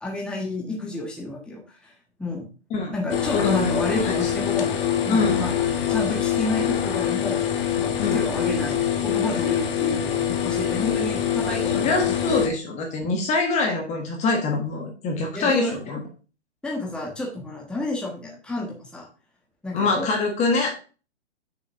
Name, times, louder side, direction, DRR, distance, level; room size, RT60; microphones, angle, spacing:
voice 1, 0.0-1.9 2.2-2.5 2.9-4.8 5.0-5.5 5.9-7.5 7.8-11.9 12.2-12.3 15.3-15.9 16.6-19.1 19.6-20.1, left 2 dB, 5° left, -2 dB, 1.5 m, -30 dB
sound 1, 3.1-12.5, left 9 dB, 50° left, 1.6 m, -24 dB
voice 2, 3.3-4.3 5.1-5.4 8.0-8.2 11.4-16.0 19.7-20.7, left 3 dB, 20° left, 2 dB, 1.5 m, -25 dB
6.8 x 4.6 x 5.6 m, 0.36 s
hypercardioid pair, 140°, 35 cm